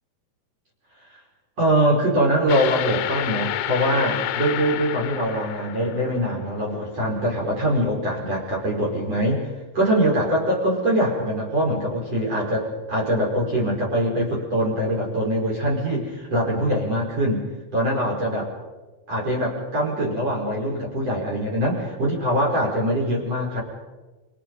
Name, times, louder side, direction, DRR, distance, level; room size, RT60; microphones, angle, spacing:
voice 1, 1.6-9.5 9.7-17.4 17.7-18.5 19.1-23.6, equal, 30° right, -1 dB, 5.4 m, -23 dB
sound 1, 2.5-6.4, left 13 dB, 75° left, 3.0 m, -29 dB
29.0 x 27.0 x 5.4 m, 1.2 s
omnidirectional pair, 5.8 m